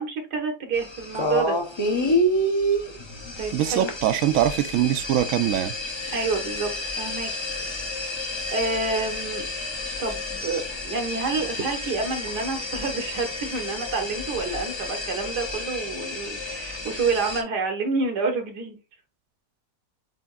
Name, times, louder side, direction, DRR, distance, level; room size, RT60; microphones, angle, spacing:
voice 1, 0.0-1.6 3.4-3.9 6.1-7.3 8.5-9.5 10.0-18.8, right 4 dB, 90° right, 1.8 m, -28 dB
sound 1, 0.7-17.4, left 1 dB, 30° left, 0.5 m, -29 dB
voice 2, 3.5-5.8, right 11 dB, 70° right, 0.9 m, -23 dB
7.7 x 2.9 x 2.3 m
omnidirectional pair, 1.7 m